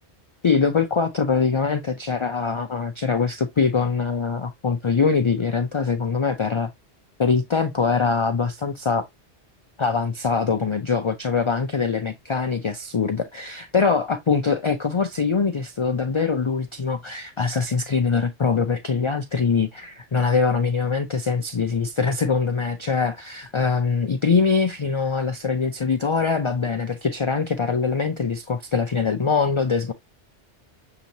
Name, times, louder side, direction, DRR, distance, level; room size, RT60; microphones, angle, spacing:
voice 1, 0.4-6.7 7.2-9.0 9.8-29.9, left 5 dB, 45° left, 0.4 m, -23 dB
6.7 x 2.9 x 2.6 m
omnidirectional pair, 1.2 m